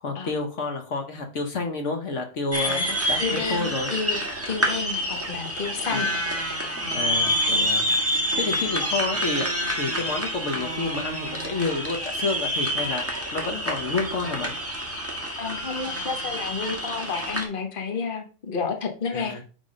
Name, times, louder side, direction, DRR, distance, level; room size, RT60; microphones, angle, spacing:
voice 1, 0.0-3.9 5.9-6.1 6.9-7.8 8.4-14.5 19.1-19.4, left 3 dB, 65° left, 4 dB, 1.4 m, -29 dB
sound 1, 2.5-17.4, equal, 10° right, 1.7 m, -27 dB
voice 2, 2.6-6.1 8.8-8.9 15.4-19.4, left 5 dB, 45° left, 4 dB, 1.3 m, -31 dB
9.1 x 3.7 x 5.1 m, 0.37 s
omnidirectional pair, 1.3 m